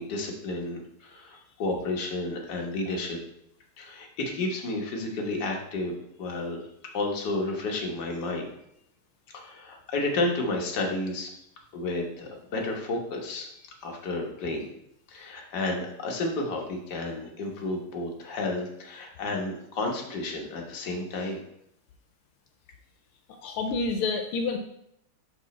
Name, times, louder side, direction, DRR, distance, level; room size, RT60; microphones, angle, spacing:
voice 1, 0.0-3.2 3.8-6.6 6.9-8.5 9.3-11.3 11.7-13.5 13.8-14.7 15.1-21.4, left 2 dB, 55° left, 0 dB, 1.7 m, -31 dB
voice 2, 23.4-24.6, left 4 dB, 85° left, 5 dB, 1.6 m, -28 dB
5.9 x 5.3 x 4.2 m, 0.76 s
omnidirectional pair, 2.3 m